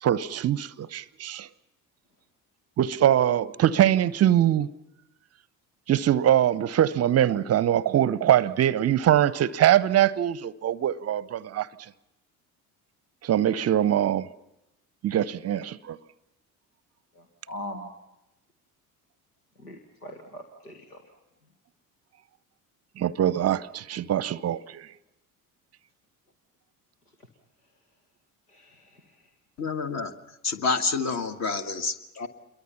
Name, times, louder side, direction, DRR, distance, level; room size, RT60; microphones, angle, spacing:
voice 1, 0.0-1.5 2.8-4.7 5.9-11.7 13.2-14.3 15.0-16.0 23.0-24.9, right 11 dB, 35° right, 0.7 m, -23 dB
voice 2, 17.2-17.9 19.6-21.0 28.5-29.0, left 1 dB, 85° left, 1.7 m, -41 dB
voice 3, 29.6-30.1 30.4-32.3, left 4 dB, 35° left, 1.7 m, -28 dB
28.0 x 22.5 x 5.8 m
figure-of-eight pair, 55°, 45 cm